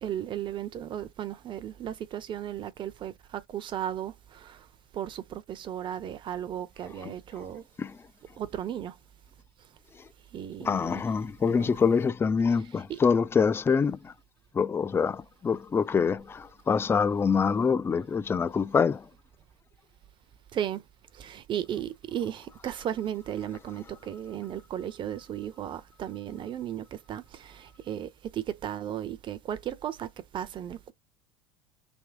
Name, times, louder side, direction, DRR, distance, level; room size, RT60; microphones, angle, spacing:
voice 1, 0.0-4.6 4.9-7.6 8.4-8.9 10.3-11.0 11.5-11.8 12.7-13.0 20.5-20.8 21.1-30.9, right 10 dB, 40° right, 0.8 m, -35 dB
voice 2, 10.6-14.1 14.5-19.1, left 6 dB, 20° left, 0.4 m, -25 dB
3.6 x 2.9 x 4.6 m
hypercardioid pair, 75°, 13 cm